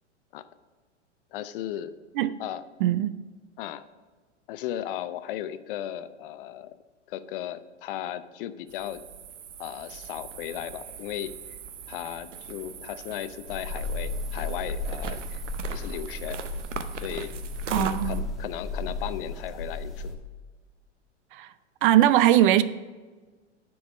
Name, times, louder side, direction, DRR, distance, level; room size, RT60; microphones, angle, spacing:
voice 1, 1.3-2.0 2.4-2.6 3.6-3.8 4.5-6.8 7.1-9.0 9.6-11.4 11.9-15.4 15.7-16.4 17.0-17.3 17.7-20.2, left 11 dB, 50° left, 0.6 m, -36 dB
voice 2, 2.8-3.1 17.7-18.2 21.3-21.5 21.8-22.6, right 13 dB, 45° right, 0.4 m, -20 dB
sound 1, 8.7-18.2, right 7 dB, 80° right, 0.8 m, -41 dB
sound 2, 13.5-20.1, left 2 dB, ahead, 1.3 m, -34 dB
9.4 x 4.6 x 6.5 m
hypercardioid pair, 110°, 36 cm